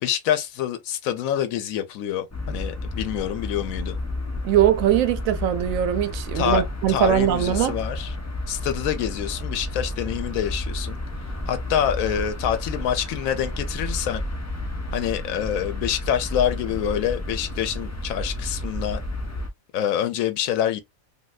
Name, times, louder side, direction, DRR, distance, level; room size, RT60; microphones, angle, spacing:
voice 1, 0.0-3.9 6.3-8.2 8.5-11.0 11.5-14.2 14.9-19.0 19.7-20.8, left 10 dB, 85° left, 1.0 m, -26 dB
sound 1, 2.3-19.5, left 1 dB, 20° left, 0.4 m, -31 dB
voice 2, 4.4-7.7, right 11 dB, 85° right, 1.0 m, -21 dB
3.1 x 2.6 x 2.3 m
omnidirectional pair, 1.4 m